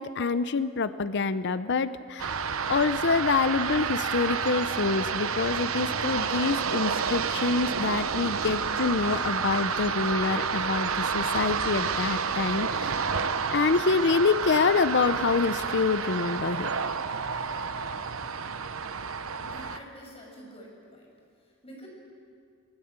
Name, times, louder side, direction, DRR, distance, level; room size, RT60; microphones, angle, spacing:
voice 1, 0.0-2.4 2.7-13.0 13.5-16.7 17.1-17.2, left 4 dB, 55° left, 13 dB, 0.6 m, -26 dB
sound 1, 2.2-19.8, right 6 dB, 90° right, 1.0 m, -30 dB
voice 2, 19.3-21.1 21.4-21.9, equal, 30° left, -1 dB, 6.8 m, -47 dB
24.0 x 20.0 x 8.8 m, 2.3 s
head